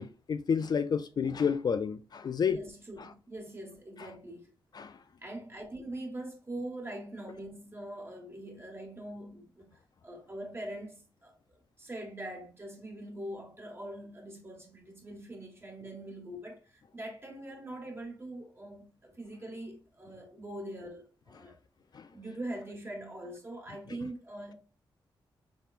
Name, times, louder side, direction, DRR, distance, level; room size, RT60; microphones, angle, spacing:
voice 1, 0.0-2.6 4.8-4.9 21.9-22.0, left 6 dB, 50° left, 0.3 m, -30 dB
voice 2, 2.5-4.5 5.2-9.7 10.0-21.6 22.1-24.5, right 1 dB, 25° right, 1.5 m, -43 dB
4.4 x 3.5 x 2.4 m
cardioid pair, 75°, 9 cm